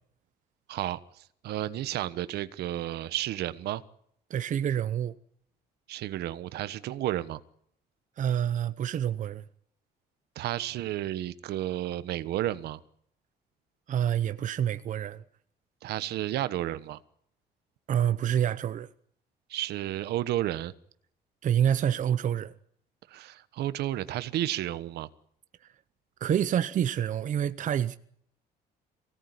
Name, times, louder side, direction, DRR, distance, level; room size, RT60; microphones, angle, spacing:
voice 1, 0.7-3.8 5.9-7.4 10.3-12.8 15.8-17.0 19.5-20.7 23.1-25.1, right 14 dB, 75° right, 1.3 m, -32 dB
voice 2, 4.3-5.2 8.2-9.4 13.9-15.2 17.9-18.9 21.4-22.5 25.6-25.7 26.2-28.0, right 9 dB, 50° right, 0.9 m, -27 dB
24.0 x 17.5 x 9.7 m
cardioid pair, 110°, 17 cm